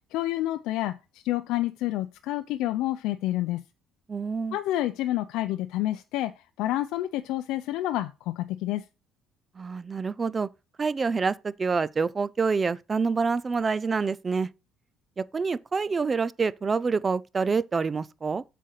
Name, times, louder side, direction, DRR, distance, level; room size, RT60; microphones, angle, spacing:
voice 1, 0.1-3.6 4.5-8.8, left 15 dB, 75° left, 0.5 m, -29 dB
voice 2, 4.1-4.6 9.6-10.5 10.8-14.5 15.2-18.4, right 4 dB, 20° right, 0.3 m, -27 dB
7.6 x 4.2 x 6.5 m
cardioid pair, 150°, 0 cm